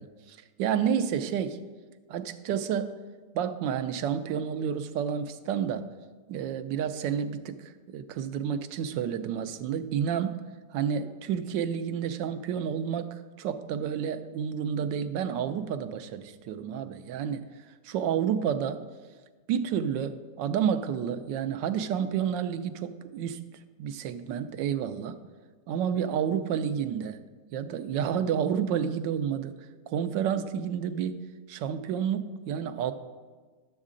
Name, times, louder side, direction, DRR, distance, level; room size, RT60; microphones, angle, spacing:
voice 1, 0.0-1.6 2.1-3.0 3.3-5.8 6.3-10.4 10.7-17.4 17.8-18.8 19.5-23.4 23.8-25.2 25.7-27.2 27.5-29.5 29.9-31.2 31.5-32.9, right 8 dB, 90° right, 10 dB, 1.3 m, -30 dB
11.5 x 7.2 x 3.7 m, 1.4 s
omnidirectional pair, 1.9 m